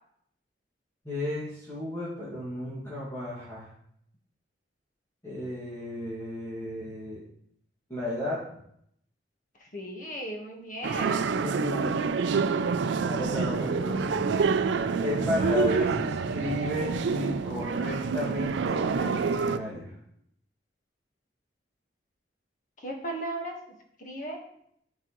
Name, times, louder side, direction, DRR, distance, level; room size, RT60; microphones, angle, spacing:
voice 1, 1.0-3.7 5.2-7.2 7.9-8.4 11.4-12.1 12.8-14.2 15.0-19.9, left 1 dB, 15° left, -10 dB, 2.0 m, -33 dB
voice 2, 9.7-11.5 22.8-23.5 24.0-24.4, right 1 dB, 45° left, 1 dB, 1.3 m, -36 dB
sound 1, 10.8-19.6, right 5 dB, 80° right, 0.4 m, -27 dB
sound 2, 12.7-17.9, equal, 25° right, 2.8 m, -43 dB
12.0 x 4.6 x 3.1 m, 0.72 s
head